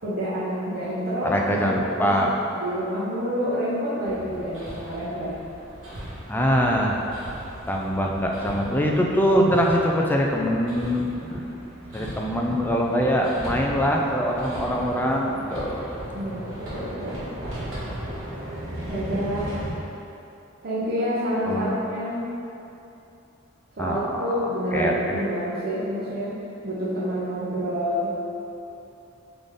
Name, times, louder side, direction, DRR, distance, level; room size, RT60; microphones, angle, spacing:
voice 1, 0.0-2.1 2.6-5.4 16.1-17.2 18.9-19.6 20.6-22.2 23.8-26.4 26.6-28.2, equal, 55° right, -10 dB, 0.8 m, -28 dB
voice 2, 1.2-2.3 6.3-7.0 7.7-11.5 11.9-15.9 21.5-21.7 23.8-25.2, equal, 10° left, -1 dB, 0.3 m, -23 dB
Hammer, 4.0-19.7, right 1 dB, 80° right, 1.4 m, -37 dB
3.9 x 3.4 x 3.6 m, 2.8 s
head